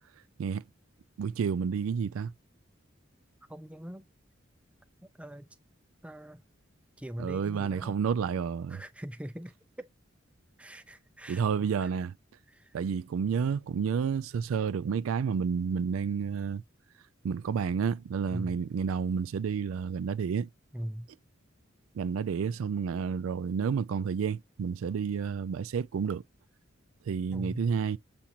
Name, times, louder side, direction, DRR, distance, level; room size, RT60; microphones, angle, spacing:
voice 1, 1.2-2.3 7.2-8.8 11.3-12.1 12.7-16.6 17.2-20.5 21.9-26.2 27.1-28.0, right 6 dB, 90° right, 0.3 m, -30 dB
voice 2, 3.5-4.1 5.2-5.5 6.0-6.4 7.0-7.9 8.7-9.9 10.6-11.4 11.8-11.9 12.5-12.7 18.3-18.6 20.7-21.1 27.3-27.7, equal, 5° right, 0.4 m, -41 dB
7.1 x 2.5 x 2.9 m
head